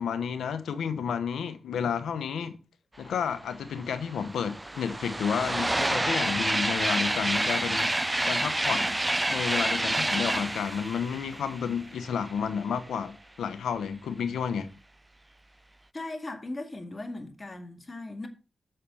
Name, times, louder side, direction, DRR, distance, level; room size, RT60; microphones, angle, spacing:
voice 1, 0.0-2.6 3.0-9.0 9.3-14.7, left 7 dB, 85° left, 0.9 m, -31 dB
sound 1, 3.5-3.6 3.8-12.4, right 1 dB, 20° right, 0.3 m, -28 dB
voice 2, 15.9-18.3, left 2 dB, 35° left, 2.0 m, -38 dB
6.7 x 6.4 x 5.4 m
cardioid pair, 50°, 0 cm